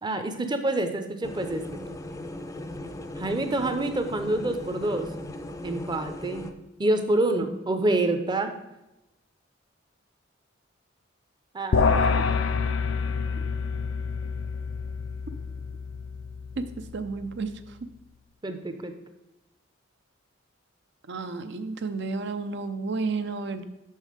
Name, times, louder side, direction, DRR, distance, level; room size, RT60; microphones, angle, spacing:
voice 1, 0.0-1.9 3.2-5.1 5.6-6.4 6.8-8.5 11.5-12.2 18.4-18.9, right 2 dB, 25° right, 7 dB, 0.6 m, -27 dB
sound 1, 1.2-6.5, left 1 dB, 15° left, 0.4 m, -38 dB
sound 2, 11.7-17.2, left 5 dB, 80° left, 0.5 m, -27 dB
voice 2, 16.9-17.5 21.1-23.6, right 4 dB, 65° right, 10 dB, 0.6 m, -31 dB
6.3 x 5.5 x 5.0 m, 0.92 s
head